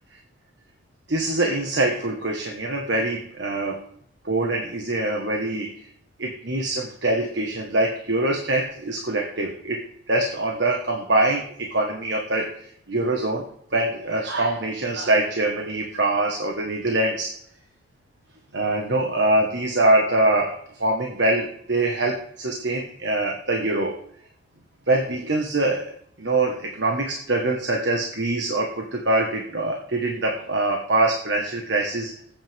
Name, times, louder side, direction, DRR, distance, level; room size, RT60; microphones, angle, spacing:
voice 1, 1.1-3.8 4.2-5.9 6.2-13.4 13.7-17.3 18.5-24.0 24.9-25.9 26.2-32.1, right 2 dB, 75° right, 1 dB, 1.7 m, -24 dB
20.0 x 8.9 x 3.7 m, 0.68 s
head